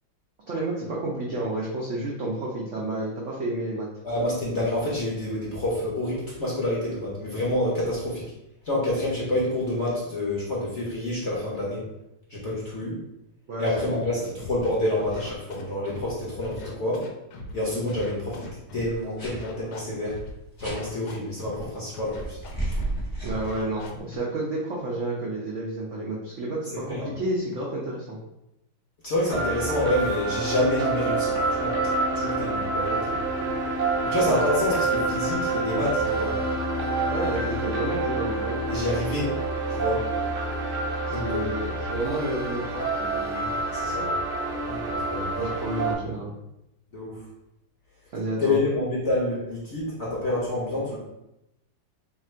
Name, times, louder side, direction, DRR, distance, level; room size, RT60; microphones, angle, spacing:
voice 1, 0.5-3.9 13.5-13.7 13.9-14.3 23.2-28.2 37.1-38.6 41.1-43.5 45.4-46.3 48.1-48.6, right 2 dB, 80° right, -4 dB, 0.6 m, -30 dB
voice 2, 4.0-8.2 8.6-11.8 12.3-13.0 13.6-17.0 17.5-18.5 18.7-20.2 20.6-22.4 26.7-27.1 29.0-31.8 32.1-33.2 34.0-36.3 38.7-39.3 39.7-40.0 41.1-41.5 43.7-44.1 44.6-45.3 46.9-47.2 48.4-51.0, left 1 dB, 50° left, -5 dB, 0.8 m, -28 dB
Scratching (performance technique), 14.4-14.7 15.0-16.1 16.4-17.5 17.9-19.0 19.3-20.3 20.6-21.6 21.9-22.5 22.8-23.0 23.3-24.2, left 2 dB, 85° left, 1.6 m, -40 dB
sound 1, 17.9-18.0 18.3-18.5 19.2-19.4 20.6-20.8 22.1-24.0, right 1 dB, 30° left, 0.5 m, -32 dB
sound 2, 29.3-45.9, right 2 dB, 55° right, 0.9 m, -27 dB
3.5 x 2.5 x 4.3 m, 0.87 s
omnidirectional pair, 2.2 m